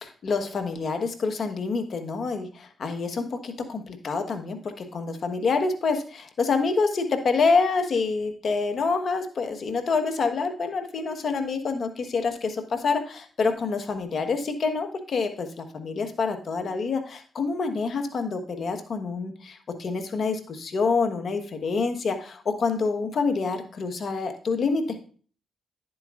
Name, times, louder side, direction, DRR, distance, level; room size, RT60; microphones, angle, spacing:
voice 1, 0.0-25.0, left 4 dB, 60° left, 7 dB, 1.4 m, -27 dB
10.5 x 7.6 x 2.5 m, 0.42 s
supercardioid pair, 55°, 0 cm